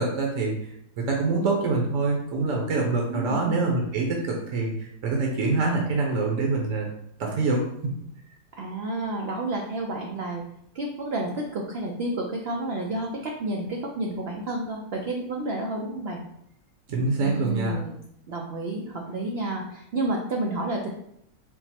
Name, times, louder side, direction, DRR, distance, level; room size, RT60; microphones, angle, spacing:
voice 1, 0.0-6.9 7.2-7.9 16.9-17.8, right 3 dB, 60° right, 0 dB, 0.9 m, -25 dB
voice 2, 3.1-3.6 8.6-10.4 10.7-16.2 17.2-18.0 18.3-20.9, right 2 dB, 85° right, 0 dB, 0.5 m, -30 dB
4.4 x 2.0 x 4.1 m, 0.75 s
omnidirectional pair, 1.7 m